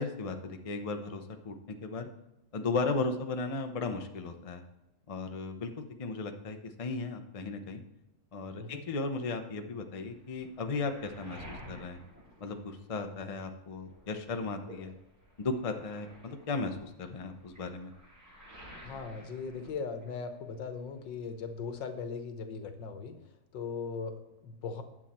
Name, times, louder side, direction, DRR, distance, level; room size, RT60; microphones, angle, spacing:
voice 1, 0.0-2.1 2.5-4.6 5.1-7.8 8.3-12.0 12.4-14.9 15.4-17.9, left 3 dB, 55° left, 6 dB, 0.4 m, -36 dB
Waves surf, 10.1-13.3 13.6-20.5 20.8-21.7, equal, 45° right, 4.5 m, -53 dB
voice 2, 18.8-23.2 23.5-24.8, left 5 dB, 90° left, 7 dB, 1.7 m, -39 dB
9.8 x 7.2 x 4.3 m, 0.90 s
omnidirectional pair, 1.9 m